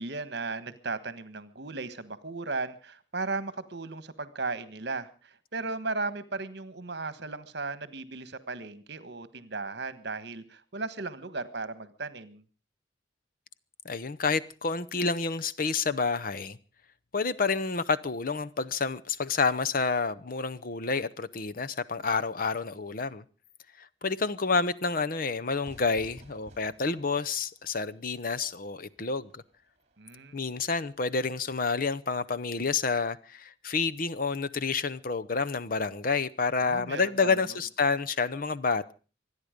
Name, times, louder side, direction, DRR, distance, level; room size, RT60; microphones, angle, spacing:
voice 1, 0.0-12.4 30.0-30.3 36.6-37.6, right 3 dB, 60° right, 1.4 m, -36 dB
voice 2, 13.8-16.6 17.1-23.2 23.8-29.4 30.3-38.9, left 4 dB, 45° left, 0.7 m, -29 dB
Fire / Fireworks, 25.6-31.2, right 1 dB, 35° right, 2.4 m, -56 dB
26.0 x 9.8 x 5.1 m
head